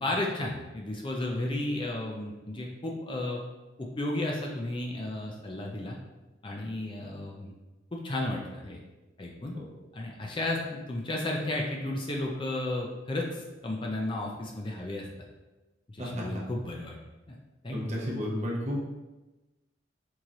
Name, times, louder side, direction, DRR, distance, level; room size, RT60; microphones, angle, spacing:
voice 1, 0.0-3.4 3.8-6.0 6.4-7.5 7.9-8.8 9.2-9.5 9.9-15.1 15.9-17.0 17.3-17.4 17.6-18.1, left 1 dB, 25° left, -1 dB, 0.5 m, -33 dB
voice 2, 17.7-18.8, left 1 dB, 35° right, -3 dB, 1.0 m, -32 dB
4.6 x 2.8 x 3.7 m, 1.1 s
head